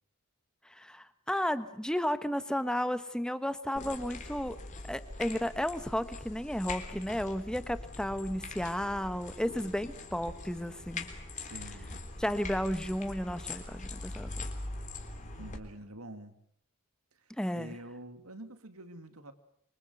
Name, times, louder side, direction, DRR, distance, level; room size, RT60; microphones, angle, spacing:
voice 1, 0.6-4.6 4.9-11.1 12.2-14.3 17.4-17.7, equal, 5° left, 12 dB, 1.2 m, -33 dB
sound 1, 3.7-15.6, left 2 dB, 35° left, 3.5 m, -42 dB
voice 2, 11.3-12.1 15.3-16.4 17.1-19.3, right 1 dB, 75° right, 9 dB, 2.5 m, -47 dB
26.0 x 24.5 x 7.9 m, 0.67 s
head